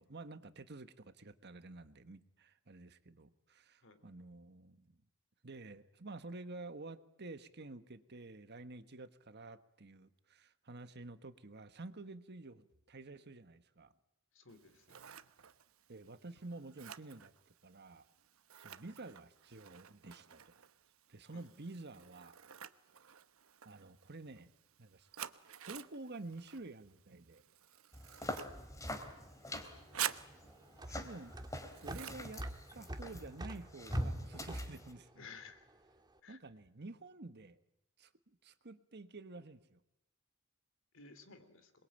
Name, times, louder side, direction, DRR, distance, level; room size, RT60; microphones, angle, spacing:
voice 1, 0.0-5.0 5.4-13.9 15.9-18.0 18.6-20.4 21.1-22.3 23.6-24.5 24.8-25.1 25.7-27.4 30.9-31.3 31.8-32.4 32.7-35.2 36.3-37.6 38.0-39.8, right 2 dB, 55° right, 11 dB, 1.4 m, -50 dB
voice 2, 14.3-15.0 21.3-21.5 28.3-28.5 35.1-35.7 36.2-36.4 40.9-41.7, left 5 dB, 65° left, 10 dB, 3.3 m, -55 dB
Scissors, 14.5-33.3, right 10 dB, 80° right, 1.0 m, -50 dB
sound 1, 27.9-34.9, left 1 dB, 15° left, 3.2 m, -43 dB
sound 2, 29.4-36.0, right 1 dB, 20° right, 1.9 m, -47 dB
27.0 x 22.0 x 8.9 m, 0.89 s
head